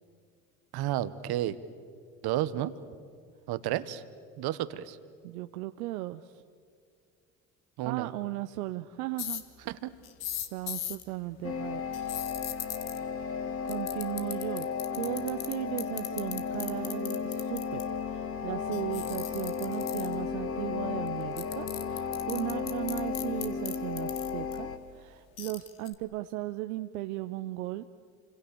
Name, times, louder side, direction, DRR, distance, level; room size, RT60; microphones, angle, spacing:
voice 1, 0.7-1.6 2.2-2.7 3.5-4.0 4.4-5.0 7.8-8.1 9.7-9.9, right 13 dB, 60° right, 14 dB, 1.5 m, -31 dB
voice 2, 5.2-6.4 7.8-9.4 10.3-12.2 13.7-17.8 18.1-24.7 24.9-27.8, right 17 dB, 80° right, 9 dB, 0.9 m, -36 dB
sound 1, 9.2-9.4 10.0-11.0 11.9-13.0 13.7-15.5 15.8-17.8 18.7-20.1 21.1-21.2 21.4-24.6 25.4-25.9, left 12 dB, 60° left, 2.0 m, -37 dB
sound 2, 11.4-24.8, left 6 dB, 30° left, 2.3 m, -34 dB
28.5 x 26.5 x 7.1 m, 2.1 s
hypercardioid pair, 65°, 43 cm